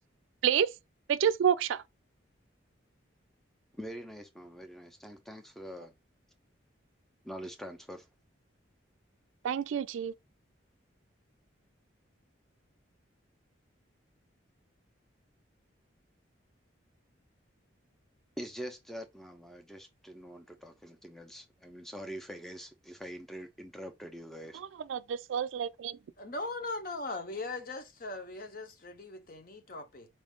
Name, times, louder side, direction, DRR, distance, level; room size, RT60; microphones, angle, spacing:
voice 1, 1.1-1.8 9.4-10.1 24.9-26.0, right 8 dB, 80° right, 0.3 m, -28 dB
voice 2, 3.7-5.9 7.2-8.1 18.4-24.6, equal, ahead, 0.5 m, -44 dB
voice 3, 26.2-30.1, left 2 dB, 45° left, 0.7 m, -39 dB
4.2 x 2.4 x 3.5 m
head